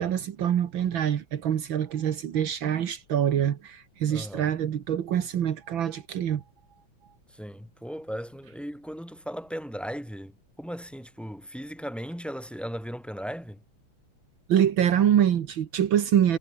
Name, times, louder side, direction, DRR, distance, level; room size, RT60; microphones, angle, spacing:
voice 1, 0.0-6.4 14.5-16.4, right 9 dB, 75° right, 2.0 m, -25 dB
voice 2, 4.1-4.5 7.3-13.6, equal, ahead, 6.8 m, -37 dB
omnidirectional pair, 2.2 m